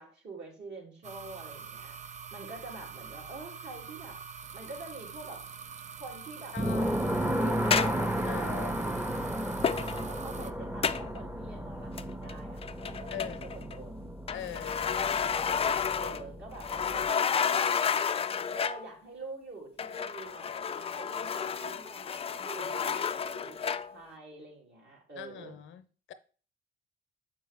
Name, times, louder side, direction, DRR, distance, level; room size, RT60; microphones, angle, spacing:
voice 1, 0.0-4.2 4.5-5.4 6.0-8.7 9.9-14.2 16.0-18.0 18.5-25.5, right 3 dB, 60° right, 2.9 m, -46 dB
sound 1, 1.0-10.5, right 6 dB, 35° right, 0.5 m, -45 dB
voice 2, 6.5-6.8 8.2-8.8 13.1-13.4 14.3-15.0 25.2-26.1, left 11 dB, 75° left, 0.7 m, -41 dB
sound 2, 6.6-17.1, right 1 dB, 10° right, 0.7 m, -34 dB
sound 3, 7.7-8.1 9.6-10.1 10.8-11.2 12.0-12.3 12.6-13.8 14.3-16.3 16.6-18.9 19.8-24.0, left 7 dB, 30° left, 0.4 m, -31 dB
6.9 x 5.3 x 3.5 m
cardioid pair, 90°, 20 cm